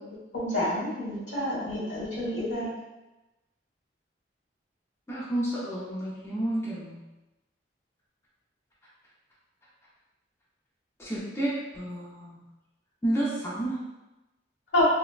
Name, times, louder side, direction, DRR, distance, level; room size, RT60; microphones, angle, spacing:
voice 1, 0.3-2.7 14.7-14.8, left 1 dB, 85° left, -8 dB, 1.4 m, -28 dB
voice 2, 5.1-7.0 11.0-12.4 13.0-13.8, right 1 dB, 15° left, -7 dB, 0.5 m, -30 dB
3.1 x 2.0 x 2.3 m, 1.0 s
head